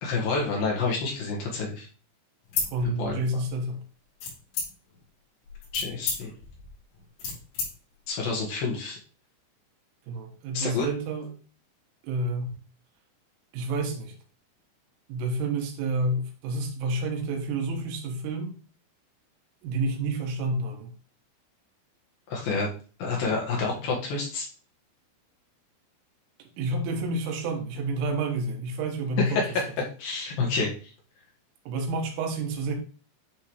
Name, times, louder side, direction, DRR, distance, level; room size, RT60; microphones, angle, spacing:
voice 1, 0.0-1.9 3.0-3.2 5.7-6.3 8.1-9.0 10.5-10.9 22.3-22.7 23.0-24.5 29.3-29.5 30.0-30.7, left 4 dB, 65° left, -1 dB, 2.5 m, -28 dB
sound 1, 2.4-3.5 4.2-5.0 5.5-7.7, left 5 dB, 85° left, 5.2 m, -32 dB
voice 2, 2.7-3.8 10.1-11.4 12.0-12.6 13.5-14.1 15.1-18.6 19.6-20.9 26.6-29.4 31.7-32.7, right 2 dB, 80° right, 3 dB, 3.7 m, -29 dB
10.5 x 3.6 x 3.1 m, 0.38 s
omnidirectional pair, 5.9 m